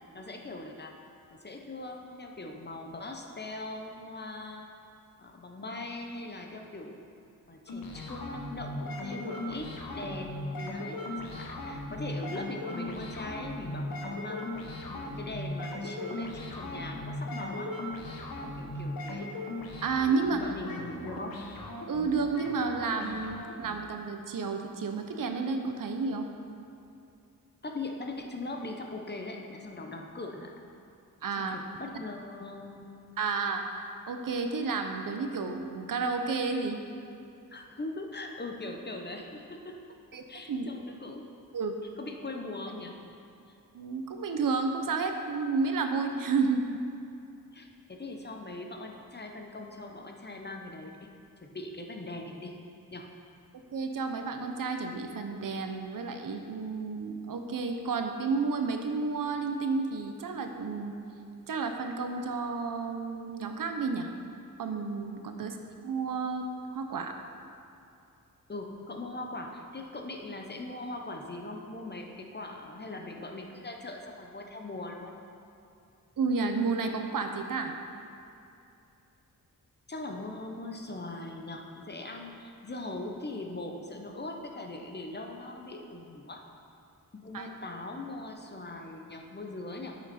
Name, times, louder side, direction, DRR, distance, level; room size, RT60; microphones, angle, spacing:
voice 1, 0.1-0.9 1.3-4.7 5.2-7.0 7.5-14.5 14.9-17.7 18.6-19.3 20.4-21.3 27.6-30.5 31.4-32.9 37.5-39.8 40.3-41.2 42.0-43.0 47.5-51.1 51.4-52.5 52.9-53.1 68.5-75.1 79.9-86.4 87.1-90.0, left 2 dB, 30° left, 2 dB, 0.9 m, -40 dB
sound 1, 7.7-23.8, left 1 dB, 85° left, 1.1 m, -38 dB
voice 2, 19.8-20.4 21.9-26.3 31.2-31.6 33.2-36.8 40.1-40.2 40.5-40.7 41.5-41.7 43.7-46.6 53.7-60.9 61.5-64.1 64.6-65.6 65.8-67.1 76.2-77.7 87.3-87.5, right 4 dB, 70° right, 5 dB, 0.8 m, -31 dB
9.7 x 6.0 x 4.3 m, 2.7 s
wide cardioid pair, 85°, 34 cm